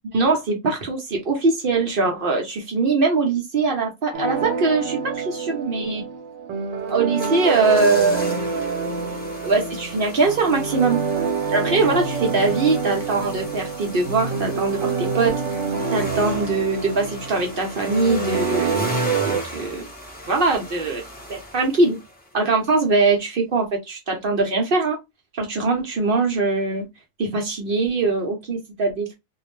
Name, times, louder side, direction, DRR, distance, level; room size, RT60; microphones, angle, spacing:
voice 1, 0.1-6.0 6.9-8.3 9.4-11.0 11.5-15.3 15.9-19.0 19.2-19.9 20.3-21.0 21.3-22.0 22.3-25.0 25.3-26.9 27.2-29.1, right 3 dB, 55° right, 0.7 m, -22 dB
sound 1, 4.1-19.4, right 5 dB, 80° right, 1.0 m, -27 dB
sound 2, 6.9-22.4 22.7-22.8, left 1 dB, 10° left, 0.5 m, -36 dB
2.4 x 2.0 x 3.0 m
omnidirectional pair, 1.3 m